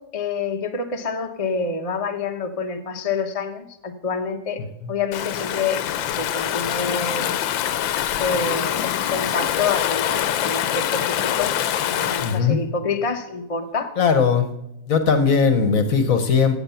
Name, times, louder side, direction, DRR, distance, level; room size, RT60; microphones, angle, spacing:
voice 1, 0.0-4.6 4.9-5.8 6.2-7.3 8.2-11.6 11.8-13.9, left 4 dB, 30° left, 4 dB, 0.6 m, -27 dB
Stream / Ocean, 5.1-12.4, left 10 dB, 85° left, 1.5 m, -24 dB
voice 2, 12.2-12.6 14.0-14.5 14.9-16.6, left 6 dB, 50° left, 9 dB, 1.2 m, -18 dB
15.5 x 8.2 x 5.7 m, 0.87 s
omnidirectional pair, 2.1 m